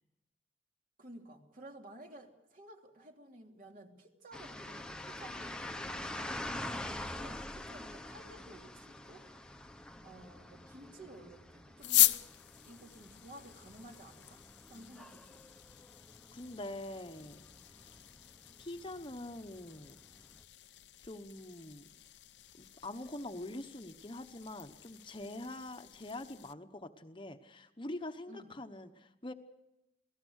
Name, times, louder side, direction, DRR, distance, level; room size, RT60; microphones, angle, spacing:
voice 1, 1.0-6.6 7.1-9.2 10.0-12.2 12.6-15.4 28.3-28.6, right 1 dB, 50° right, 2 dB, 3.1 m, -54 dB
sound 1, 4.3-20.4, left 1 dB, 5° left, 1.0 m, -46 dB
sound 2, 11.8-26.5, left 16 dB, 90° left, 0.8 m, -38 dB
voice 2, 16.3-17.8 18.6-20.0 21.0-21.9 22.6-29.3, left 1 dB, 30° left, 8 dB, 1.1 m, -44 dB
28.5 x 18.5 x 6.5 m, 0.95 s
head